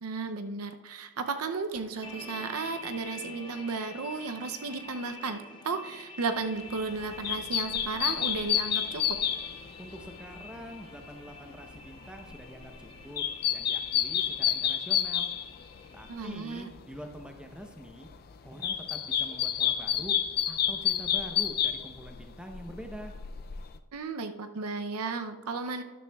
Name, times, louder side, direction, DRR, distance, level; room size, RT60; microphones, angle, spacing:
voice 1, 0.0-9.2 16.1-16.7 23.9-25.8, right 4 dB, 70° right, 7 dB, 0.6 m, -34 dB
sound 1, 2.0-16.5, left 2 dB, 20° left, 1.0 m, -48 dB
sound 2, 6.7-16.3 16.6-17.5 17.9-23.8, left 10 dB, 45° left, 0.4 m, -30 dB
voice 2, 9.8-15.3 15.9-18.1 18.4-20.2 20.5-23.1, equal, 5° right, 4 dB, 0.7 m, -45 dB
12.5 x 11.0 x 2.3 m, 1.3 s
head